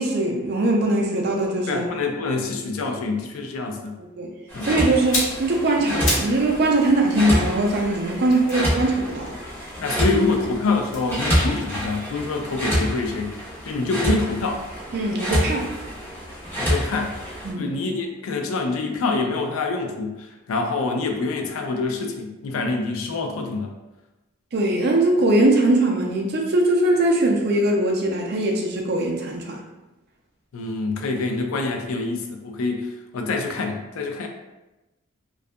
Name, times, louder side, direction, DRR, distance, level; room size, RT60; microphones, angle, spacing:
voice 1, 0.0-1.8 4.2-4.3 4.6-9.3 14.9-15.8 17.4-17.7 24.5-29.6, right 1 dB, 50° right, 0 dB, 0.4 m, -21 dB
voice 2, 1.7-3.9 4.5-4.7 9.8-14.6 16.6-17.1 17.6-23.7 30.5-34.3, left 3 dB, 80° left, 3 dB, 0.4 m, -26 dB
sound 1, 4.5-17.5, equal, 10° left, 0.5 m, -27 dB
sound 2, 4.9-6.4 6.7-10.0 10.8-12.9 13.1-13.3, left 1 dB, 65° left, 0.8 m, -32 dB
2.6 x 2.3 x 2.2 m, 1.0 s
head